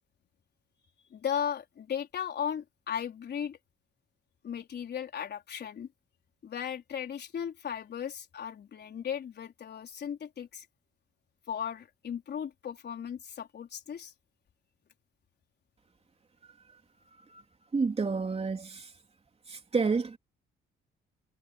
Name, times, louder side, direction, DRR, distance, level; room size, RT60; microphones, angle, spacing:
voice 1, 1.1-3.6 4.4-5.9 6.4-10.7 11.5-14.1, left 8 dB, 55° left, 4.3 m, -36 dB
voice 2, 17.7-18.9 19.5-20.2, right 4 dB, 30° right, 3.5 m, -29 dB
cardioid pair, 90°, 20 cm